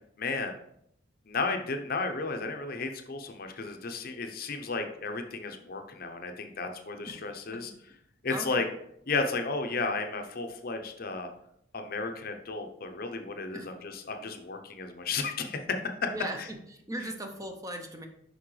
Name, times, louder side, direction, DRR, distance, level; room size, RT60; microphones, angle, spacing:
voice 1, 0.2-0.6 1.3-7.7 8.2-8.7 9.1-11.3 11.7-16.1 16.4-16.5, left 4 dB, 50° left, 5 dB, 0.7 m, -33 dB
voice 2, 8.3-8.7 13.5-13.7 16.1-18.1, right 1 dB, 20° right, 4 dB, 0.6 m, -38 dB
6.0 x 5.3 x 3.2 m, 0.73 s
head